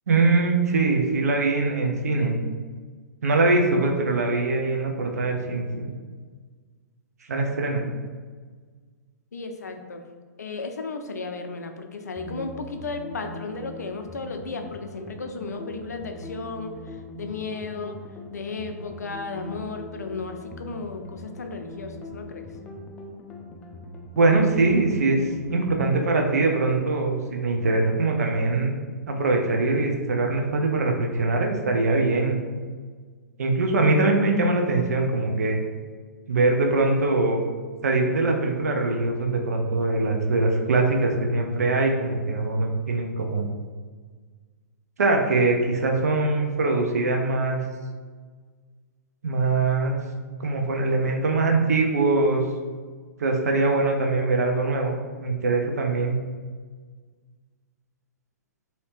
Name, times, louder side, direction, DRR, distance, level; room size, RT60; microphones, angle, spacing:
voice 1, 0.1-2.4 3.2-5.9 7.3-7.8 24.2-25.2 25.5-28.8 29.1-32.4 33.4-35.6 36.3-37.4 37.8-43.5 45.0-47.6 49.2-50.0 50.4-52.4 53.2-56.2, right 3 dB, 65° right, 2 dB, 0.6 m, -22 dB
voice 2, 9.3-10.0 10.4-18.0 18.3-22.5, left 4 dB, 75° left, 6 dB, 0.4 m, -34 dB
sound 1, 12.2-25.9, left 1 dB, 15° left, 0.5 m, -41 dB
2.8 x 2.7 x 3.3 m, 1.5 s
figure-of-eight pair, 115°, 9 cm